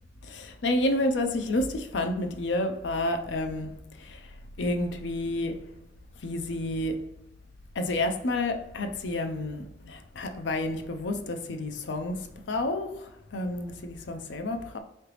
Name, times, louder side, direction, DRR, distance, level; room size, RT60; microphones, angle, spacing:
voice 1, 0.2-4.2 4.6-5.6 6.2-7.0 7.8-14.8, left 1 dB, 70° left, 0.5 m, -30 dB
3.8 x 3.3 x 3.0 m
head